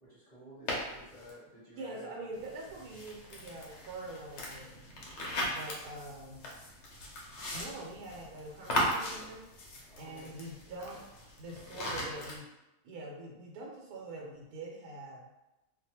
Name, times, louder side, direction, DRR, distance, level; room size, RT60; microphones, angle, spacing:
voice 1, 0.0-2.1 9.9-10.4, equal, 30° left, -11 dB, 0.8 m, -53 dB
sound 1, 0.7-1.3 2.3-12.4, equal, 60° left, 0.8 m, -38 dB
voice 2, 1.7-4.7 5.5-6.5 7.5-9.4 10.0-11.0 11.4-12.5 12.8-15.3, right 2 dB, 80° right, -1 dB, 1.1 m, -44 dB
2.4 x 2.3 x 2.8 m, 0.96 s
omnidirectional pair, 1.6 m